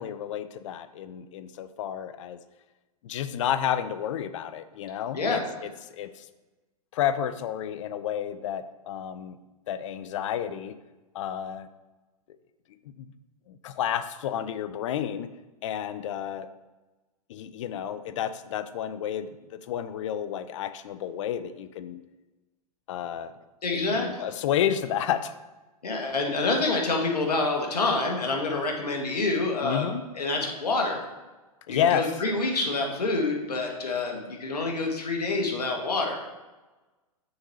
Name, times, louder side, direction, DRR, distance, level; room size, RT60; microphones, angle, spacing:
voice 1, 0.0-2.4 3.0-6.3 6.9-9.4 9.7-10.8 11.1-11.7 12.9-13.1 13.5-15.3 15.6-16.5 17.3-22.0 22.9-23.3 23.7-25.4 29.6-30.0 31.7-32.1, left 10 dB, 50° left, 12 dB, 0.5 m, -31 dB
voice 2, 23.6-24.2 25.8-29.8 30.1-31.1 31.7-36.3, left 3 dB, 85° left, 2 dB, 1.4 m, -27 dB
6.5 x 4.5 x 4.0 m, 1.2 s
hypercardioid pair, 125°, 20 cm